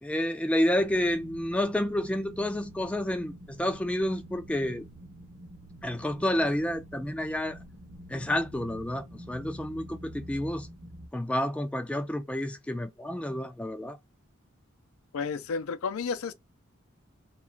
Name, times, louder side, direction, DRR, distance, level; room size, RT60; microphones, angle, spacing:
voice 1, 0.0-4.8 5.8-7.6 8.1-10.7 11.1-14.0, left 1 dB, 5° left, 0.3 m, -29 dB
sound 1, 0.8-11.1, equal, 40° right, 0.6 m, -47 dB
voice 2, 15.1-16.3, left 5 dB, 85° left, 0.4 m, -31 dB
2.4 x 2.3 x 3.0 m
head